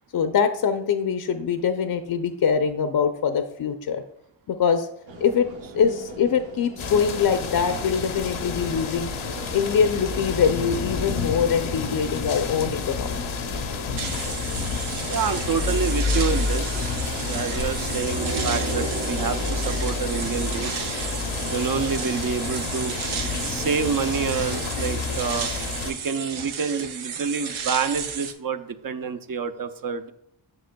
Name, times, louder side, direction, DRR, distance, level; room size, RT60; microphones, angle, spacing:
voice 1, 0.1-4.0 4.5-4.9 5.2-5.5 5.7-9.1 9.5-13.1, left 6 dB, 50° left, 8 dB, 0.5 m, -23 dB
sound 1, 5.1-24.1, right 4 dB, 70° right, 1.1 m, -38 dB
sound 2, 6.8-25.9, left 5 dB, 85° left, 0.8 m, -29 dB
sound 3, 14.0-28.3, right 7 dB, 90° right, 0.7 m, -33 dB
voice 2, 15.1-20.7 21.5-23.0 23.4-25.5 25.8-30.1, right 6 dB, 45° right, 10 dB, 0.6 m, -28 dB
7.7 x 6.3 x 2.2 m, 0.76 s
cardioid pair, 70°, 47 cm